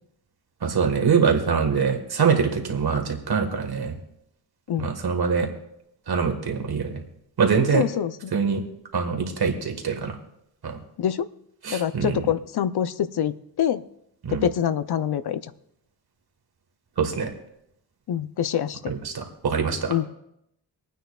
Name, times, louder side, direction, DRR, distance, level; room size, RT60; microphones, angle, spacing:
voice 1, 0.6-3.9 4.8-5.5 6.1-7.0 7.4-7.8 8.3-8.6 8.9-10.2 10.6-10.8 11.6-12.2 14.2-14.4 17.0-17.3 18.9-19.9, right 5 dB, 65° right, 5 dB, 1.6 m, -24 dB
voice 2, 7.7-8.3 11.0-11.3 11.7-13.8 14.3-15.5 18.1-18.9 19.9-20.1, left 9 dB, 70° left, 13 dB, 0.6 m, -25 dB
25.0 x 9.2 x 2.4 m, 0.80 s
wide cardioid pair, 135°, 40 cm